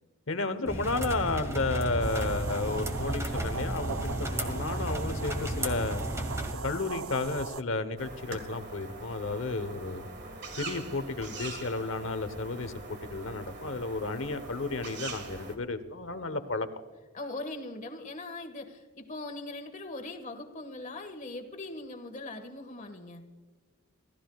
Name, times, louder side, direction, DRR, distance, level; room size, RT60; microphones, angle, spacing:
voice 1, 0.3-6.0 6.6-10.0 10.6-16.7, left 3 dB, 65° left, 12 dB, 1.1 m, -32 dB
sound 1, 0.7-6.5, right 1 dB, 15° right, 1.6 m, -33 dB
sound 2, 2.0-7.6, right 5 dB, 70° right, 0.5 m, -38 dB
sound 3, 8.0-15.6, right 3 dB, 50° right, 1.9 m, -43 dB
voice 2, 17.1-23.3, left 2 dB, 40° left, 5 dB, 1.7 m, -40 dB
27.5 x 15.0 x 2.4 m, 1.4 s
head